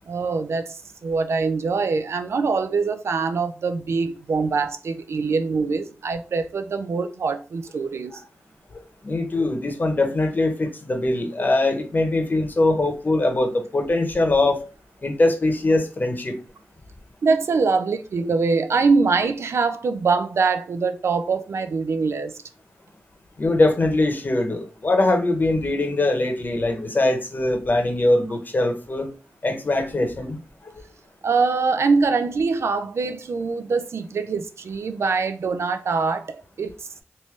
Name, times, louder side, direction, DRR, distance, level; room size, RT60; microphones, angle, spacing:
voice 1, 0.1-8.2 17.2-22.4 31.2-37.0, right 4 dB, 75° right, 0.4 m, -23 dB
voice 2, 8.7-14.7 15.0-16.4 23.4-29.1 29.4-30.4 30.6-30.8, left 2 dB, 45° left, 0.9 m, -22 dB
3.6 x 2.6 x 3.1 m
cardioid pair, 55°, 5 cm